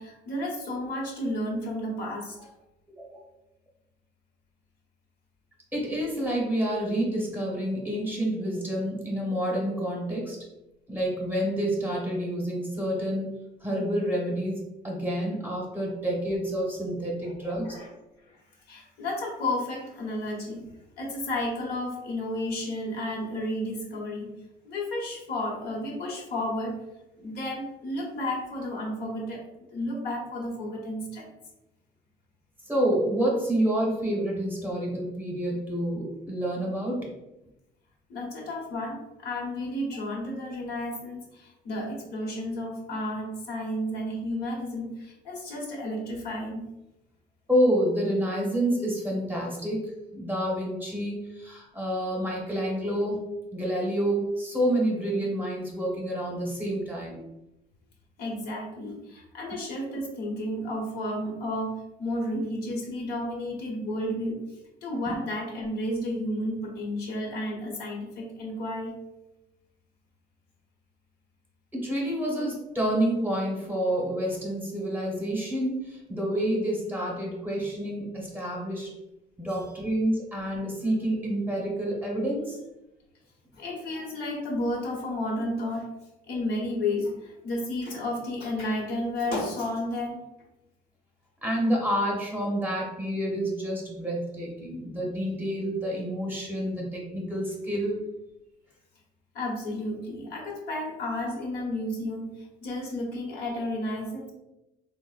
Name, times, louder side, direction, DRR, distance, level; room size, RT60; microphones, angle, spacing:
voice 1, 0.0-2.5 17.2-17.9 18.2-18.4 18.7-20.6 21.0-24.3 24.6-26.8 27.2-31.3 38.1-46.7 58.2-64.4 64.8-68.9 83.5-85.9 86.3-90.2 99.3-104.3, left 1 dB, 70° left, -2 dB, 0.9 m, -32 dB
voice 2, 5.7-10.4 10.9-17.7 32.7-37.1 47.5-53.2 53.5-57.2 65.1-65.2 71.7-78.9 79.4-82.6 91.4-98.0, right 1 dB, 10° right, -3 dB, 0.8 m, -28 dB
3.5 x 2.0 x 2.4 m, 0.94 s
cardioid pair, 110°, 17 cm